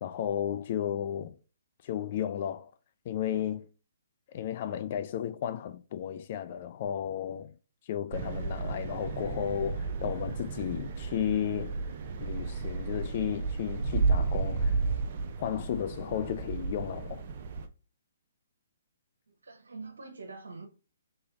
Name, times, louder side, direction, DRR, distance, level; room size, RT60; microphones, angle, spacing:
voice 1, 0.0-1.3 1.8-2.7 3.1-3.7 4.3-7.5 7.9-11.8 12.2-14.8 15.4-17.2, left 10 dB, 45° left, 0.4 m, -33 dB
sound 1, 8.1-17.7, right 4 dB, 45° right, 0.6 m, -32 dB
voice 2, 19.3-20.7, right 3 dB, 80° right, 0.9 m, -45 dB
3.4 x 3.4 x 3.9 m
figure-of-eight pair, 135°, 0 cm